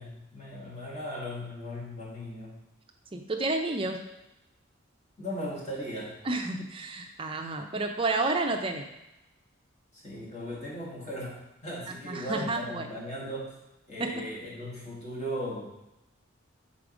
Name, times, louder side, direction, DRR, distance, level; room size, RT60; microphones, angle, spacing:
voice 1, 0.0-2.5 5.2-6.2 10.0-13.6 13.9-15.6, equal, 35° left, -6 dB, 1.8 m, -37 dB
voice 2, 3.1-4.0 6.2-8.9 12.1-12.9 14.0-14.2, right 2 dB, 25° right, 4 dB, 0.5 m, -30 dB
5.0 x 4.1 x 4.9 m, 0.95 s
head